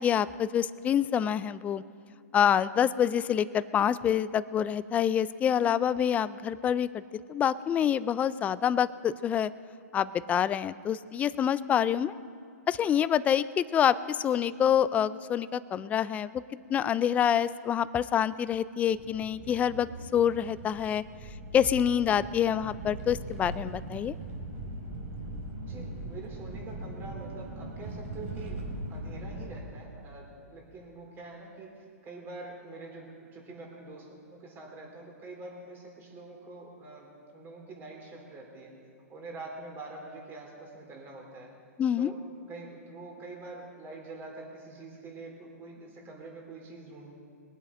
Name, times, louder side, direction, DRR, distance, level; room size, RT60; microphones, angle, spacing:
voice 1, 0.0-1.8 2.3-7.0 7.3-9.5 9.9-12.2 12.7-16.3 16.7-21.0 21.5-24.1 41.8-42.1, left 9 dB, 15° left, 16 dB, 0.3 m, -26 dB
sound 1, 18.9-29.6, right 2 dB, 55° right, 3.7 m, -40 dB
voice 2, 25.6-38.7 39.1-41.5 42.0-47.1, right 3 dB, 25° right, 0 dB, 3.5 m, -45 dB
21.5 x 8.1 x 5.4 m, 2.3 s
hypercardioid pair, 130°, 9 cm